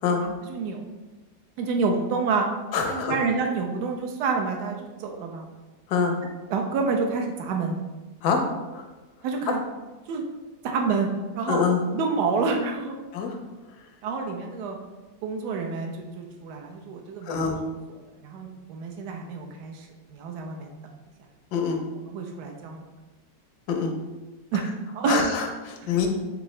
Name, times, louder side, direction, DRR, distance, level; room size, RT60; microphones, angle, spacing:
voice 1, 0.2-0.8 1.6-2.5 2.9-5.5 6.5-7.8 9.2-9.6 10.1-10.2 10.6-11.1 11.3-11.6 11.9-12.9 14.0-14.8 15.2-17.4 18.2-20.7 22.1-22.8 24.5-24.6 24.9-25.2, right 4 dB, 90° right, 2 dB, 1.2 m, -28 dB
voice 2, 2.7-3.2 5.9-6.2 8.2-8.5 8.7-8.9 11.5-11.8 13.1-13.4 17.2-17.6 21.5-21.8 23.7-23.9 25.1-26.1, left 5 dB, 85° left, 3 dB, 1.2 m, -25 dB
3.8 x 3.5 x 3.1 m, 1.2 s
omnidirectional pair, 1.7 m